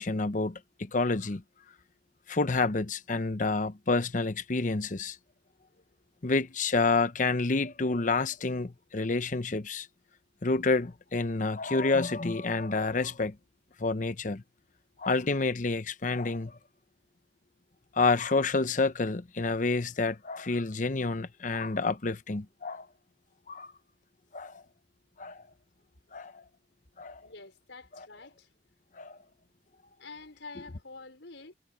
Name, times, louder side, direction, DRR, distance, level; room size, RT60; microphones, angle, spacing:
voice 1, 0.0-1.4 2.3-5.2 6.2-9.9 10.4-13.4 13.8-14.4 15.0-16.6 18.0-22.9 23.5-23.7 24.3-24.6 25.2-25.4 26.1-26.4 27.0-27.2 29.0-29.2, left 3 dB, 45° left, 0.8 m, -29 dB
voice 2, 27.2-28.5 30.0-31.5, left 3 dB, 80° left, 5.2 m, -47 dB
head